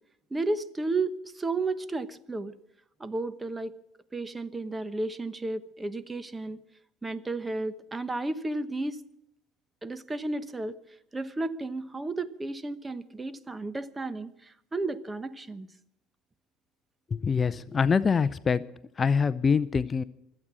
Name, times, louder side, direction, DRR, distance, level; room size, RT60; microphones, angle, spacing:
voice 1, 0.3-2.5 3.0-3.7 4.1-6.6 7.0-9.0 9.8-10.8 11.1-15.7, right 2 dB, 20° right, 14 dB, 1.0 m, -33 dB
voice 2, 17.1-18.6 19.0-20.0, left 5 dB, 30° left, 16 dB, 0.5 m, -24 dB
25.0 x 8.8 x 6.2 m, 0.78 s
supercardioid pair, 85°, 0 cm